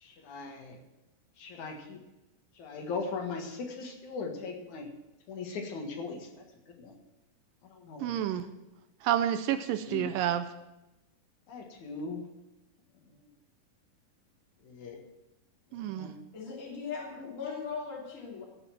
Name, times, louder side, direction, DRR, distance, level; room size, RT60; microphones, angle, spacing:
voice 1, 0.0-0.8 1.4-2.0 2.6-4.9 5.3-6.3 6.8-7.0 7.6-8.1 9.7-10.1 11.5-12.2 14.7-15.0 15.9-16.1, left 4 dB, 60° left, 2 dB, 2.8 m, -39 dB
voice 2, 8.0-8.4 9.0-10.5 15.7-16.1, right 11 dB, 80° right, 9 dB, 2.1 m, -29 dB
voice 3, 16.3-18.4, left 5 dB, 25° left, -3 dB, 2.7 m, -38 dB
15.5 x 5.5 x 7.5 m, 0.96 s
omnidirectional pair, 4.3 m